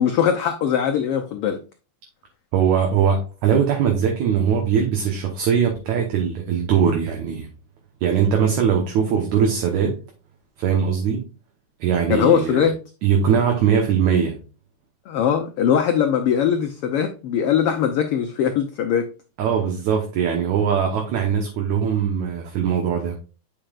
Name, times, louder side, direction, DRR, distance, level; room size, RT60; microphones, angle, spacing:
voice 1, 0.0-1.6 12.1-12.7 15.1-19.1, left 8 dB, 90° left, 5 dB, 1.2 m, -20 dB
voice 2, 2.5-7.5 8.0-10.0 10.6-11.2 11.8-12.7 13.0-14.4 19.4-23.1, right 7 dB, 75° right, 2 dB, 2.4 m, -21 dB
8.8 x 5.6 x 2.4 m, 0.33 s
omnidirectional pair, 3.5 m